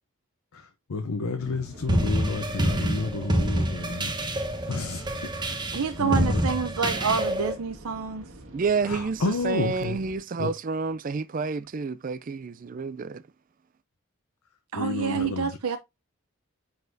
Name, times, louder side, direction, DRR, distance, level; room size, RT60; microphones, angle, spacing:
voice 1, 0.5-4.1 4.7-5.6 6.0-6.4 8.8-10.0 10.4-10.5 14.7-15.6, left 3 dB, 80° left, 0.7 m, -31 dB
sound 1, 1.4-7.4, left 1 dB, ahead, 1.4 m, -44 dB
sound 2, 1.7-10.2, right 1 dB, 60° right, 1.7 m, -47 dB
sound 3, 1.9-7.5, right 1 dB, 20° right, 1.0 m, -27 dB
voice 2, 5.7-8.2 14.7-15.8, right 5 dB, 85° right, 0.6 m, -28 dB
voice 3, 8.5-13.2, right 4 dB, 35° right, 0.3 m, -29 dB
9.3 x 4.0 x 2.6 m
head